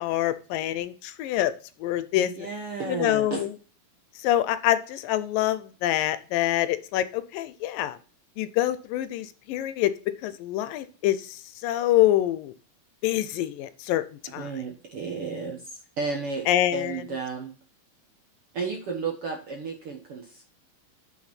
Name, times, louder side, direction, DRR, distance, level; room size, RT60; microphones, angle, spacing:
voice 1, 0.0-1.5 1.8-2.3 2.9-3.5 4.2-8.0 8.4-9.9 10.2-11.4 11.6-12.5 13.0-14.0 14.3-14.5 16.5-17.0, left 13 dB, 80° left, 13 dB, 2.3 m, -25 dB
voice 2, 2.1-3.5 14.3-17.5 18.5-20.4, right 4 dB, 65° right, 2 dB, 1.4 m, -33 dB
6.8 x 6.1 x 5.8 m, 0.39 s
omnidirectional pair, 4.1 m